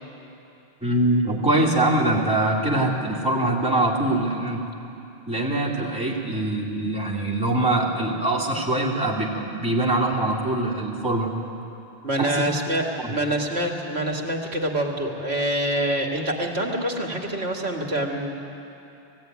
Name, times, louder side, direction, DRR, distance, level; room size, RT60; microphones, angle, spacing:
voice 1, 0.8-4.6 5.3-11.3 12.2-12.5 13.0-13.1, right 1 dB, 5° right, -6 dB, 2.5 m, -23 dB
voice 2, 12.0-18.3, right 1 dB, 80° right, 0 dB, 2.3 m, -26 dB
19.5 x 16.0 x 9.4 m, 2.8 s
omnidirectional pair, 1.1 m